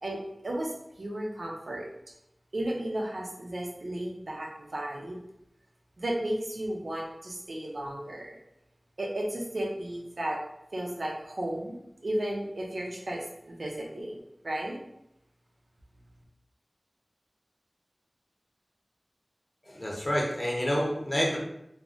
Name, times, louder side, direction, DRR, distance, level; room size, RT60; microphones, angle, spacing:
voice 1, 0.0-1.9 2.5-5.2 6.0-8.4 9.0-10.4 10.7-14.2 14.4-14.8, right 1 dB, 85° right, -2 dB, 0.6 m, -34 dB
voice 2, 19.6-21.4, equal, 35° left, -2 dB, 0.7 m, -28 dB
3.4 x 2.0 x 2.4 m, 0.81 s
wide cardioid pair, 50°, 0 cm